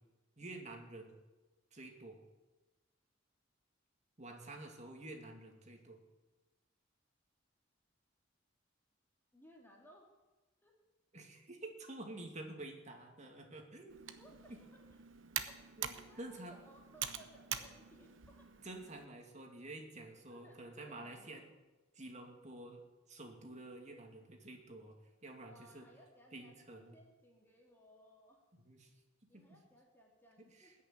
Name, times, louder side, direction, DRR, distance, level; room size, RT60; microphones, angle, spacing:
voice 1, 0.4-1.2 1.7-2.2 4.2-6.0 11.1-14.0 14.5-14.6 15.8-16.6 18.6-21.4 21.9-22.8 23.1-25.0 25.2-25.9 26.3-27.0 28.5-28.9 29.3-29.6 30.6-30.7, right 2 dB, 40° right, 3 dB, 2.5 m, -49 dB
voice 2, 9.3-10.1 10.6-10.8 14.2-15.0 15.4-18.5 20.3-21.4 25.4-28.4 29.3-30.8, equal, 10° left, -1 dB, 2.4 m, -62 dB
Computer keyboard, 13.9-19.1, right 9 dB, 80° right, 1.1 m, -45 dB
19.5 x 6.7 x 9.6 m, 1.2 s
head